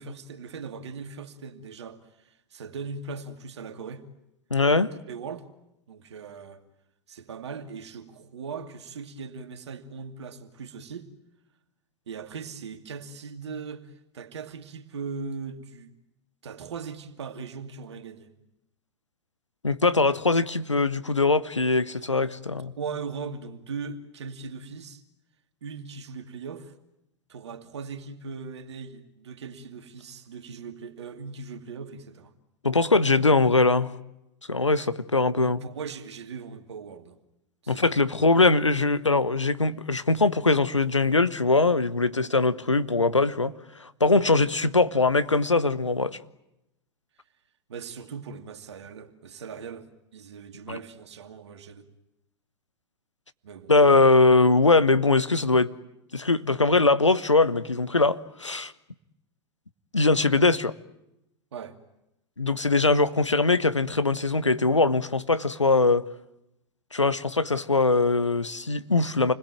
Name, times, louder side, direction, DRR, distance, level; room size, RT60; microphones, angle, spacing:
voice 1, 0.0-4.0 5.1-5.5 5.9-6.6 7.1-11.1 12.1-15.9 16.4-18.3 22.6-25.0 25.6-26.7 27.3-32.3 34.8-34.9 35.3-37.2 37.6-38.3 47.7-51.9 53.4-53.7 61.5-61.8, right 5 dB, 70° right, 2.5 m, -39 dB
voice 2, 4.5-4.9 19.6-22.7 32.6-33.9 34.5-35.6 37.7-43.5 43.8-46.2 50.7-50.8 53.7-55.7 56.1-58.7 59.9-60.7 62.4-66.0 66.9-69.3, left 3 dB, 90° left, 1.0 m, -21 dB
29.0 x 21.0 x 9.3 m
figure-of-eight pair, 90°, 15 cm